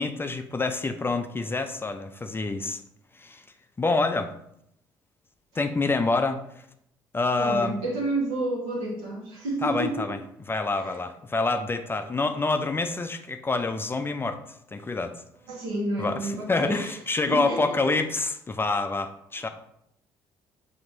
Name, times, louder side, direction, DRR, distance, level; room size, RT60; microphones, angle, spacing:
voice 1, 0.0-2.8 3.1-3.4 3.8-4.3 5.6-6.7 7.1-7.8 9.6-10.2 10.5-15.2 16.0-19.5, left 3 dB, 20° left, 8 dB, 0.4 m, -27 dB
voice 2, 7.4-10.1 10.8-11.0 15.5-16.9 17.3-17.6, right 2 dB, 75° right, -4 dB, 1.3 m, -30 dB
5.8 x 2.8 x 2.6 m, 0.75 s
hypercardioid pair, 50°, 11 cm